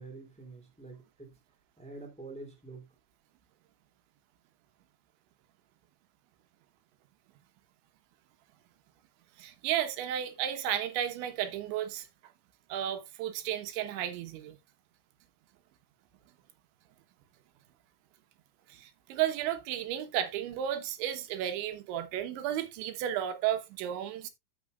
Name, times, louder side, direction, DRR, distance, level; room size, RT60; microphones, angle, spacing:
voice 1, 0.0-1.4 1.8-2.9, right 3 dB, 5° left, 1.4 m, -46 dB
voice 2, 9.4-12.1 12.7-14.6 18.7-24.3, right 11 dB, 85° right, 3.4 m, -33 dB
13.5 x 6.1 x 2.4 m
omnidirectional pair, 5.3 m